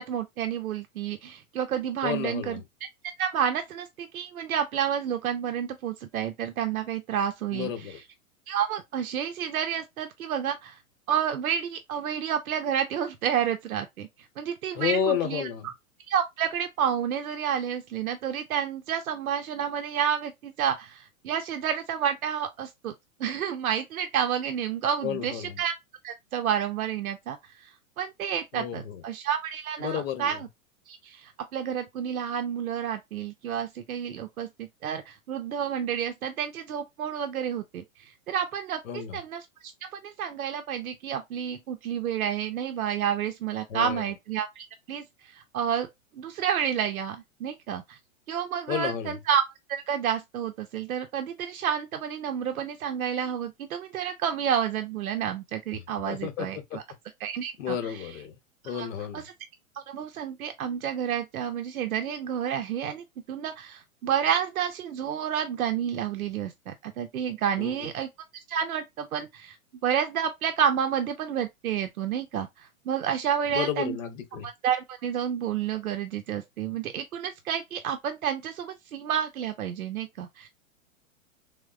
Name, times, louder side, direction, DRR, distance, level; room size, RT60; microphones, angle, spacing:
voice 1, 0.0-2.6 3.2-7.9 8.5-10.8 11.1-14.1 14.4-15.5 16.1-22.9 23.2-25.7 26.0-27.7 28.0-30.5 30.9-45.9 46.2-48.0 48.3-49.4 49.9-56.8 57.2-58.1 58.6-58.9 59.1-59.2 59.7-68.1 68.5-69.6 69.8-74.0 74.4-80.5, right 8 dB, 90° right, 0.6 m, -30 dB
voice 2, 2.0-2.6 7.5-8.0 14.7-15.7 25.0-25.6 28.5-29.0 29.8-30.4 38.9-39.2 43.7-44.0 48.7-49.2 56.1-56.8 57.6-58.4 58.6-59.2 67.6-67.9 73.5-74.5, left 8 dB, 65° left, 1.0 m, -31 dB
3.4 x 2.1 x 2.3 m
hypercardioid pair, 120°, 41 cm